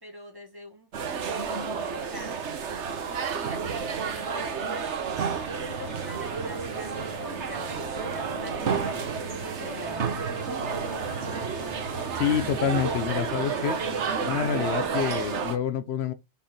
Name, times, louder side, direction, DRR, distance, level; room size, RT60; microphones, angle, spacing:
voice 1, 0.0-2.5 3.0-5.0 5.5-10.1, equal, 20° right, 1.5 m, -44 dB
sound 1, 0.9-15.6, right 6 dB, 80° right, 1.2 m, -31 dB
sound 2, 5.1-13.1, right 4 dB, 85° left, 2.6 m, -42 dB
sound 3, 5.5-14.9, equal, 25° left, 2.0 m, -42 dB
voice 2, 12.2-13.8 14.2-16.1, left 8 dB, 70° left, 0.8 m, -27 dB
5.7 x 4.3 x 4.2 m
omnidirectional pair, 1.2 m